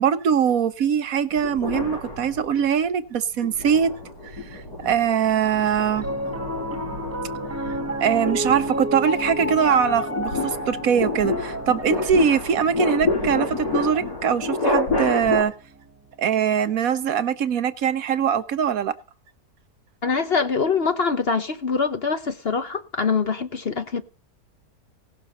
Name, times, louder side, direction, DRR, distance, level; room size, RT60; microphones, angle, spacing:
voice 1, 0.0-3.9 4.5-6.1 8.0-15.5 16.2-18.9, right 8 dB, 65° right, 1.2 m, -22 dB
sound 1, 1.4-2.8 3.3-15.4, left 3 dB, 75° left, 5.3 m, -29 dB
Piano, 5.9-16.3, equal, 10° right, 1.2 m, -32 dB
voice 2, 20.0-24.0, left 5 dB, 45° left, 1.1 m, -24 dB
18.0 x 6.8 x 5.4 m
omnidirectional pair, 1.7 m